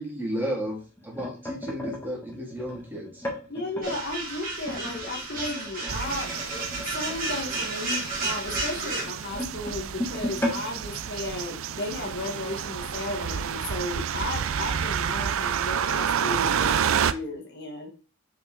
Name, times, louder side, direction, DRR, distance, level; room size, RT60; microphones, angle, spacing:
voice 1, 0.0-3.2, equal, 10° right, -1 dB, 2.1 m, -33 dB
sound 1, 0.7-4.0 4.6-11.9 12.3-12.5 12.8-13.1 13.8-13.9, left 1 dB, 10° left, 1.7 m, -36 dB
voice 2, 3.5-17.9, left 2 dB, 55° left, 2 dB, 1.4 m, -34 dB
sound 2, 3.8-9.0, right 3 dB, 45° right, 2.3 m, -32 dB
sound 3, 5.9-17.1, right 8 dB, 80° right, 0.4 m, -29 dB
6.0 x 5.3 x 3.7 m, 0.35 s
head